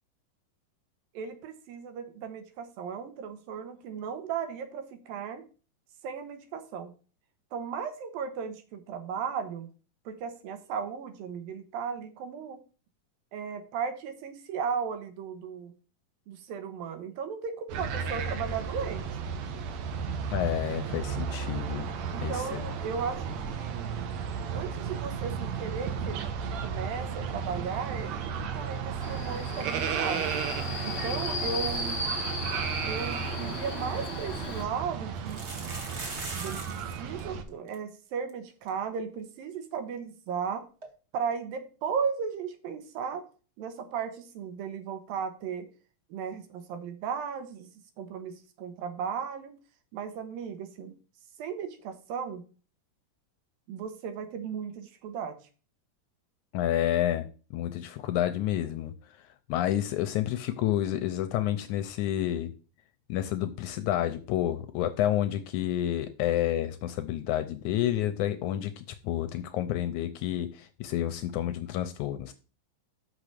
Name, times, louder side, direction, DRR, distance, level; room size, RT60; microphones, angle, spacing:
voice 1, 1.1-5.4 6.0-6.9 7.5-9.7 10.1-12.6 13.3-15.7 16.3-19.1 22.1-23.9 24.5-30.3 30.8-32.0 32.9-35.4 36.3-40.7 41.1-43.2 43.6-45.7 46.1-47.7 48.0-49.5 49.9-50.9 51.4-52.4 53.7-55.4, right 6 dB, 85° right, 8 dB, 3.0 m, -36 dB
sound 1, 17.7-37.4, right 6 dB, 65° right, 1.9 m, -34 dB
voice 2, 20.3-21.9 22.2-22.6 56.5-57.3 57.5-58.9 59.5-62.5 63.1-72.3, left 12 dB, 80° left, 10 dB, 1.8 m, -29 dB
Subway metro underground, 29.0-34.6, left 2 dB, 55° left, 1.2 m, -36 dB
sound 2, 33.9-34.0 35.2-36.9 37.2-37.3 37.5-37.7 38.3-38.4 38.7-38.8 40.8-40.9, right 2 dB, 40° right, 0.9 m, -40 dB
6.4 x 6.1 x 6.7 m, 0.36 s
omnidirectional pair, 4.0 m